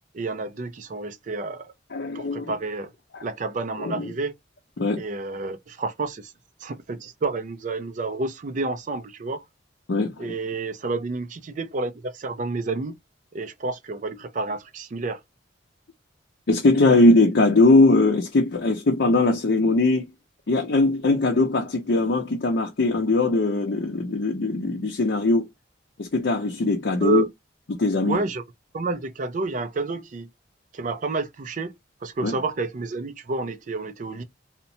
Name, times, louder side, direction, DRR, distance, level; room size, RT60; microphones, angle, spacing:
voice 1, 0.1-1.7 2.1-2.9 3.2-4.3 5.0-6.3 6.6-9.4 10.2-13.0 13.3-15.2 27.0-27.3 28.0-28.4 28.7-30.3 30.7-31.7 32.0-34.2, right 3 dB, 45° right, 0.4 m, -29 dB
voice 2, 1.9-2.5 3.1-3.2 3.8-4.1 4.8-5.0 9.9-10.3 16.5-20.0 20.5-25.4 26.0-27.2 27.8-28.2 32.2-32.4, left 2 dB, 80° left, 0.6 m, -20 dB
2.9 x 2.1 x 2.6 m
head